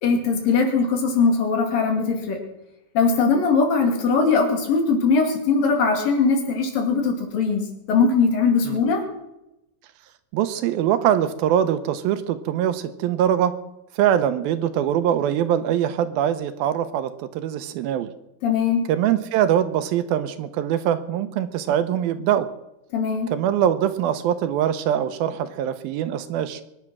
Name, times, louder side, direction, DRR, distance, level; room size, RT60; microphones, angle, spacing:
voice 1, 0.0-2.4 2.9-9.0 18.4-18.8 22.9-23.3, left 4 dB, 65° left, 3 dB, 4.2 m, -20 dB
voice 2, 10.3-13.6 14.0-18.1 18.9-22.5 23.3-26.6, right 10 dB, 80° right, 11 dB, 2.7 m, -23 dB
22.5 x 10.5 x 6.1 m, 0.90 s
omnidirectional pair, 4.3 m